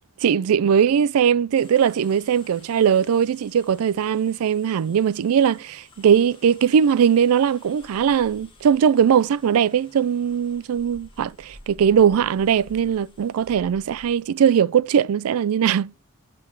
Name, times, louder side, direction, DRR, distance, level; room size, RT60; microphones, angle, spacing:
voice 1, 0.2-16.0, right 8 dB, 75° right, 0.3 m, -20 dB
sound 1, 1.6-14.1, left 1 dB, 25° left, 2.3 m, -51 dB
7.7 x 4.6 x 7.0 m
head